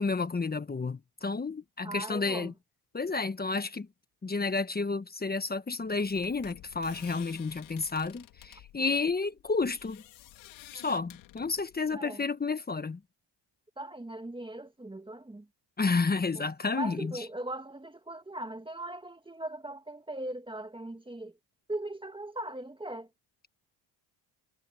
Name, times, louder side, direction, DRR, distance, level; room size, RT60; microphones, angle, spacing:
voice 1, 0.0-2.5 2.9-3.9 4.2-10.0 10.7-13.0 15.8-17.2, left 4 dB, 20° left, 1.3 m, -31 dB
voice 2, 1.8-2.5 11.9-12.2 13.8-15.5 16.4-16.5 16.7-21.4 21.7-23.1, right 1 dB, 10° right, 1.9 m, -39 dB
sound 1, 5.8-12.0, left 15 dB, 80° left, 3.5 m, -52 dB
cardioid pair, 100°, 46 cm